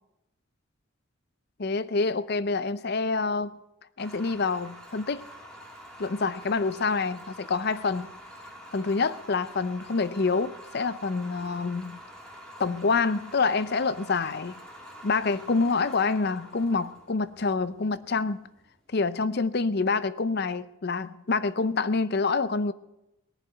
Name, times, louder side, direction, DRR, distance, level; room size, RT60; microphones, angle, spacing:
voice 1, 1.6-3.6 4.0-5.2 6.0-8.1 8.7-12.0 12.6-14.6 15.0-18.5 18.9-22.7, left 4 dB, 50° left, 0.6 m, -27 dB
sound 1, 4.0-18.9, equal, 5° left, 2.1 m, -47 dB
18.5 x 7.3 x 9.1 m
head